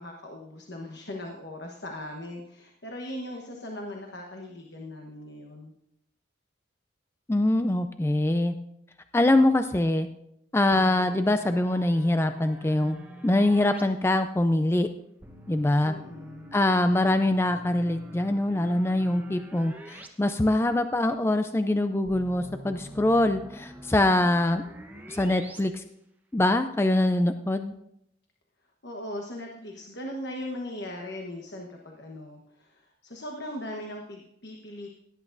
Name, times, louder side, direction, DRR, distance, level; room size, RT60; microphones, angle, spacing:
voice 1, 0.0-5.7 15.8-16.5 28.8-34.9, left 1 dB, 60° left, 1 dB, 1.2 m, -39 dB
voice 2, 7.3-8.5 9.1-10.1 10.5-13.0 13.2-14.9 15.5-15.9 16.5-24.6 25.1-25.8 26.3-27.7, left 1 dB, 10° left, 8 dB, 0.3 m, -24 dB
sound 1, 10.7-13.8 15.2-20.1 20.4-20.5 22.1-25.6, equal, 10° right, 1.0 m, -46 dB
17.5 x 10.5 x 2.6 m, 0.78 s
head